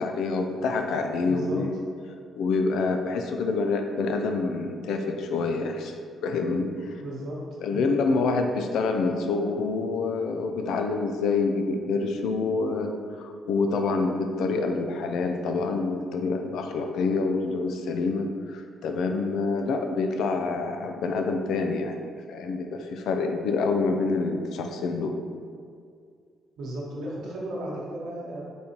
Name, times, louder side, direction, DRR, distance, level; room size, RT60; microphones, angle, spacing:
voice 1, 0.0-1.7 2.4-5.9 6.2-7.0 7.6-22.0 22.3-25.2, left 3 dB, 80° left, 5 dB, 0.4 m, -27 dB
voice 2, 1.2-1.6 7.0-7.4 7.7-7.9 26.6-28.4, right 1 dB, 80° right, -5 dB, 1.1 m, -35 dB
4.0 x 3.6 x 2.9 m, 2.2 s
cardioid pair, 90°, 0 cm